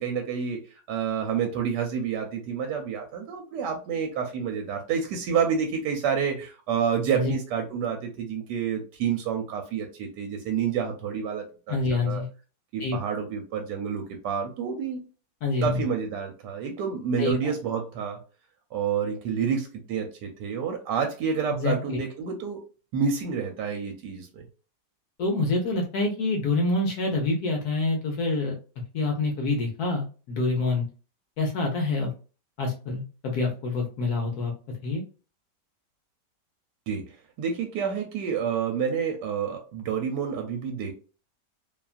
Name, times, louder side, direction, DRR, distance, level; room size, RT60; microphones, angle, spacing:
voice 1, 0.0-12.2 12.7-15.0 15.6-18.2 18.7-22.6 22.9-24.4 36.9-37.0 37.4-40.9, right 7 dB, 75° right, 3 dB, 1.1 m, -29 dB
voice 2, 11.7-12.3 12.8-13.0 15.4-15.8 17.2-17.5 21.5-22.0 25.2-28.6 28.9-30.9 31.4-32.1 32.6-34.5 34.8-35.0, left 3 dB, 70° left, 1 dB, 1.1 m, -26 dB
2.9 x 2.3 x 2.3 m, 0.35 s
omnidirectional pair, 1.9 m